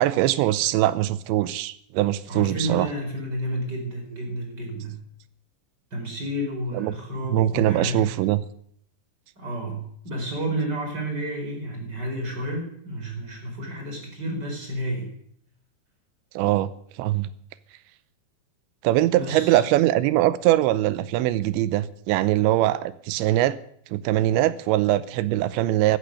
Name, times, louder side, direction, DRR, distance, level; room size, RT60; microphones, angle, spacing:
voice 1, 0.0-2.9 6.7-7.0 7.3-8.4 16.4-16.7 17.0-17.3 18.8-23.6 23.9-26.0, right 14 dB, 80° right, 16 dB, 3.0 m, -22 dB
voice 2, 2.3-5.0 5.9-8.1 9.4-15.1 19.2-19.6, equal, 25° right, 1 dB, 4.5 m, -31 dB
15.0 x 14.5 x 6.5 m, 0.65 s
omnidirectional pair, 5.3 m